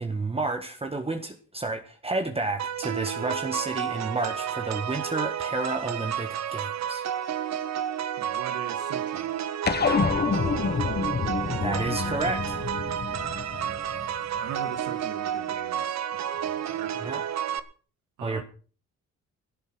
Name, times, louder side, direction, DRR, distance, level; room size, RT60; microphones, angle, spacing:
voice 1, 0.0-7.0 11.6-12.6 17.0-17.2 18.2-18.4, right 3 dB, 20° right, 1.5 m, -31 dB
sound 1, 2.6-17.6, right 9 dB, 65° right, 1.3 m, -31 dB
voice 2, 8.2-9.3 13.6-13.9 14.4-17.1 18.2-18.4, right 9 dB, 80° right, 2.0 m, -41 dB
sound 2, 9.7-14.4, left 5 dB, 35° left, 1.2 m, -28 dB
16.5 x 8.6 x 6.2 m
cardioid pair, 90°, 30 cm